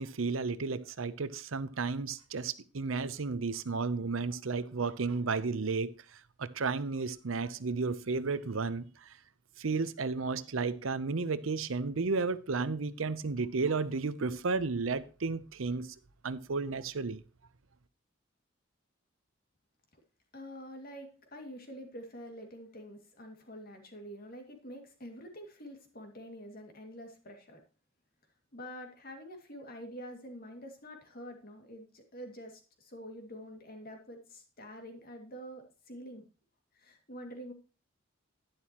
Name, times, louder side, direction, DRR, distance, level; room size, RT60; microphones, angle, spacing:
voice 1, 0.0-9.2 9.6-16.0 16.2-17.2, right 4 dB, 85° right, 0.7 m, -33 dB
voice 2, 20.3-27.6 28.5-36.2 36.7-37.5, equal, 45° left, 2.3 m, -47 dB
11.5 x 10.5 x 3.0 m
head